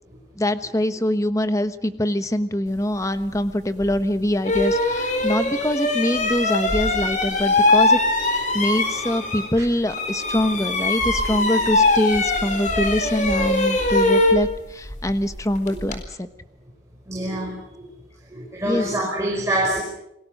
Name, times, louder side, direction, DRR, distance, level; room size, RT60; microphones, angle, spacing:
voice 1, 0.4-16.3 18.7-18.9, left 1 dB, 20° left, 10 dB, 1.2 m, -24 dB
sound 1, 3.8-3.9 4.4-9.6 9.9-16.0, left 2 dB, 45° left, 4.2 m, -22 dB
voice 2, 17.1-17.9 18.3-19.8, right 1 dB, 15° right, -2 dB, 5.2 m, -26 dB
29.5 x 21.0 x 6.6 m, 0.82 s
head